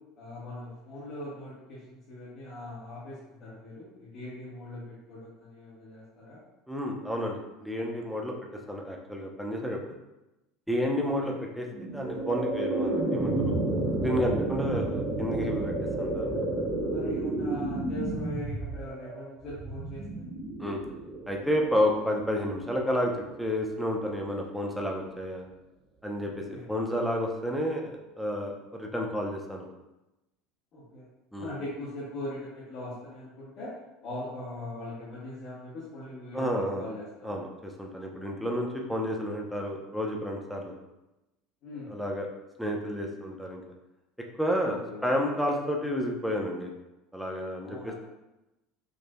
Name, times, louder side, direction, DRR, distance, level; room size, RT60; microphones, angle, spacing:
voice 1, 0.2-6.4 11.2-11.4 16.9-20.0 26.5-26.6 30.7-31.1 31.4-33.7 34.0-37.4 41.6-41.9 44.6-45.1 47.6-48.0, left 1 dB, 55° left, -9 dB, 1.1 m, -41 dB
voice 2, 6.7-8.3 8.7-9.8 10.7-13.5 14.0-16.4 20.6-20.8 21.3-23.1 23.4-25.5 26.0-29.7 31.3-31.5 36.3-36.9 37.2-40.8 41.9-42.3 42.6-43.6 44.4-46.7 47.1-47.9, equal, ahead, 0 dB, 0.6 m, -31 dB
sound 1, 11.7-22.8, right 2 dB, 40° right, 0.9 m, -31 dB
5.0 x 2.5 x 2.2 m, 0.97 s
hypercardioid pair, 90°, 0 cm